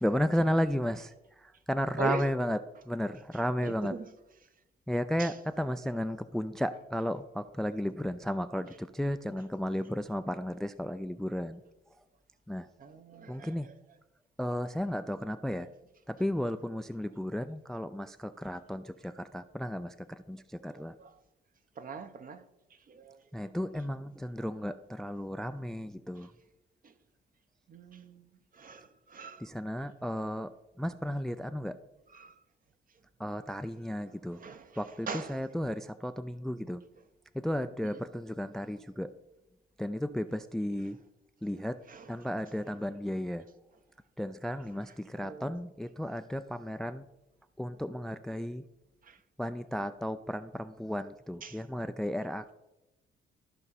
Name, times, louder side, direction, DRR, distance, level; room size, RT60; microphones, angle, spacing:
voice 1, 0.0-2.6 2.9-3.9 4.9-11.6 12.5-12.7 13.3-13.7 14.4-15.7 16.1-20.9 23.3-26.3 29.4-30.5 30.8-31.8 33.2-34.4 34.8-36.8 37.3-39.1 39.8-41.0 41.4-41.8 42.1-43.5 44.2-47.0 47.6-48.6 49.4-52.5, equal, ahead, 0.3 m, -34 dB
voice 2, 3.6-4.1 5.2-5.3 12.8-13.7 20.7-21.1 21.8-22.4 22.9-23.2 26.8-26.9 27.7-29.5 32.1-32.4 34.1-35.4 37.9-38.0 41.9-42.1 45.1-45.6 49.0-49.2 51.4-51.6, right 5 dB, 45° right, 0.9 m, -41 dB
13.5 x 5.4 x 4.1 m
cardioid pair, 90°, 20 cm